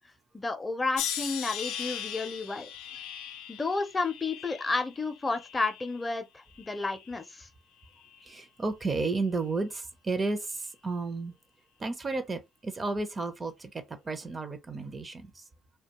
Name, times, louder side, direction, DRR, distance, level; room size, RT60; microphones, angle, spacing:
voice 1, 0.3-2.7 3.5-7.5, left 3 dB, 25° left, 0.5 m, -31 dB
sound 1, 1.0-6.1 6.5-7.2 8.0-8.3, left 9 dB, 85° left, 0.4 m, -39 dB
voice 2, 8.2-11.3 11.8-15.4, right 3 dB, 30° right, 0.6 m, -33 dB
2.3 x 2.2 x 2.9 m
supercardioid pair, 65°, 0 cm